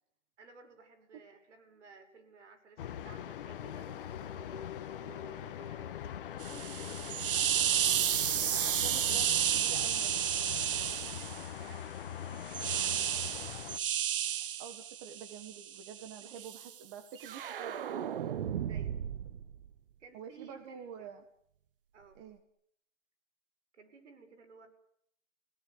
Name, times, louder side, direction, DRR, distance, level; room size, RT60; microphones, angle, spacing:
voice 1, 0.4-4.6 5.0-8.2 9.0-9.3 11.0-13.5 16.2-16.5 18.7-19.0 20.0-21.1 21.9-22.2 23.7-24.7, right 5 dB, 65° right, 5 dB, 6.3 m, -57 dB
sound 1, 2.8-13.8, left 10 dB, 45° left, 1.5 m, -42 dB
sound 2, 6.4-11.5 12.5-16.7 17.2-19.5, right 10 dB, 45° right, 1.1 m, -32 dB
voice 2, 8.5-10.1 14.6-18.1 20.1-21.2 22.1-22.4, right 7 dB, 25° right, 8 dB, 1.5 m, -48 dB
28.5 x 18.0 x 9.7 m, 0.75 s
hypercardioid pair, 165°, 38 cm